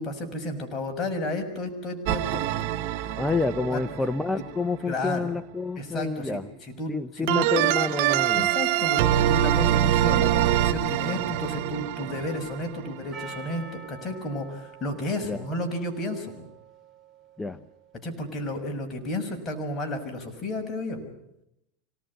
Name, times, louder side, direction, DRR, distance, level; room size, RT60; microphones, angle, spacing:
voice 1, 0.0-2.7 3.0-3.2 3.7-3.8 4.4-4.5 4.9-5.3 5.8-6.4 6.8-7.3 8.3-16.3 18.0-21.1, left 1 dB, 30° left, 3 dB, 6.4 m, -32 dB
sound 1, 2.1-4.2 7.3-12.9, right 12 dB, 65° right, 1.4 m, -24 dB
voice 2, 3.2-6.5 6.9-8.5 9.7-9.9 15.2-15.4 17.4-17.6, left 3 dB, 10° left, 12 dB, 0.9 m, -29 dB
Percussion, 13.1-18.1, right 5 dB, 25° right, 6.0 m, -46 dB
25.5 x 19.0 x 10.0 m, 0.82 s
supercardioid pair, 120°, 0 cm